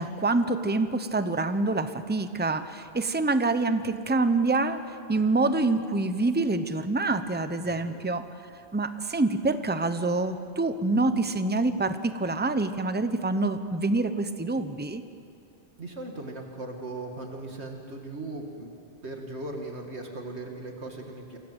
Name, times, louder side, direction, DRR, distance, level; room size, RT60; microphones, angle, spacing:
voice 1, 0.0-4.8 5.1-8.2 8.7-15.0, right 3 dB, 10° right, 10 dB, 0.9 m, -26 dB
voice 2, 7.6-8.0 15.8-18.7 19.0-21.4, right 2 dB, 80° right, 2 dB, 2.6 m, -38 dB
28.5 x 25.0 x 8.2 m, 2.5 s
omnidirectional pair, 1.1 m